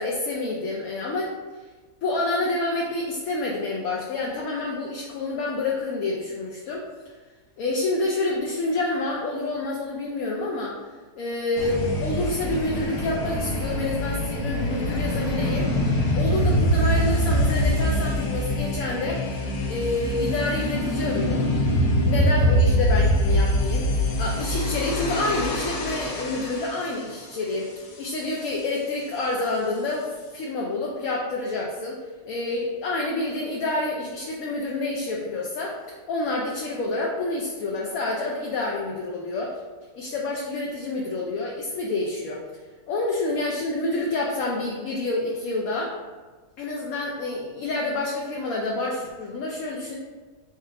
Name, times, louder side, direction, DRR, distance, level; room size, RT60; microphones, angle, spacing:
voice 1, 0.0-1.3 2.0-6.8 7.6-10.8 11.2-15.7 16.1-19.2 19.7-21.5 21.7-23.9 24.2-32.0 32.2-39.5 39.9-42.4 42.9-45.9 46.6-49.9, left 2 dB, 65° left, -2 dB, 1.0 m, -28 dB
sound 1, 11.6-26.8, equal, 85° left, 1.4 m, -24 dB
4.3 x 2.4 x 4.6 m, 1.3 s
omnidirectional pair, 1.7 m